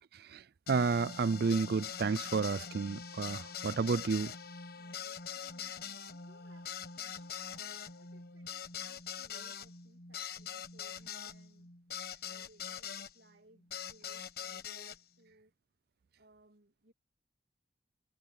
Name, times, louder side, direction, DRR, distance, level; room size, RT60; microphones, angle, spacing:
sound 1, 0.7-13.1 13.7-15.0, left 7 dB, 60° left, 1.4 m, -43 dB
voice 1, 0.7-4.3, right 4 dB, 60° right, 0.4 m, -31 dB
voice 2, 4.7-11.7 12.2-15.5 16.2-16.9, right 1 dB, 85° right, 2.6 m, -65 dB
head